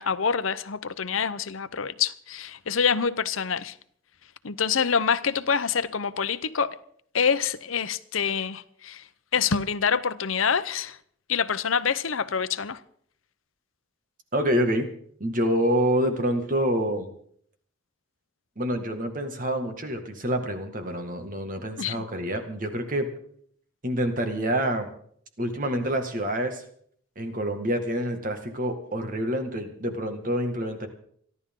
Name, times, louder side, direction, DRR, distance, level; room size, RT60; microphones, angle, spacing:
voice 1, 0.0-3.7 4.4-6.8 7.1-9.0 9.3-11.0 11.3-12.8 21.8-22.0, left 6 dB, 90° left, 0.8 m, -26 dB
voice 2, 14.3-14.9 15.2-17.1 18.6-23.1 23.8-24.9 25.4-26.6 27.2-30.9, equal, 40° right, 2.0 m, -27 dB
28.0 x 11.5 x 3.8 m
head